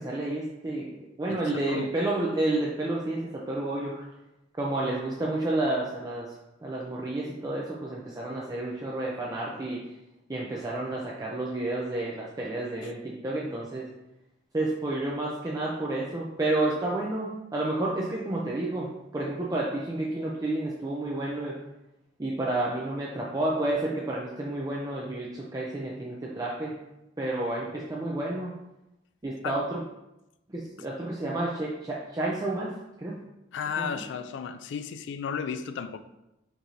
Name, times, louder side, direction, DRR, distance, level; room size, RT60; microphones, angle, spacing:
voice 1, 0.0-4.0 4.6-6.3 6.6-9.8 10.3-13.9 14.5-18.9 19.1-21.6 22.2-26.7 27.2-28.5 29.2-29.8 30.5-32.7 33.0-33.2 33.8-34.0, right 2 dB, 20° right, -4 dB, 0.5 m, -30 dB
voice 2, 33.5-36.0, left 6 dB, 65° left, 10 dB, 0.3 m, -33 dB
4.6 x 2.6 x 4.1 m, 0.92 s
head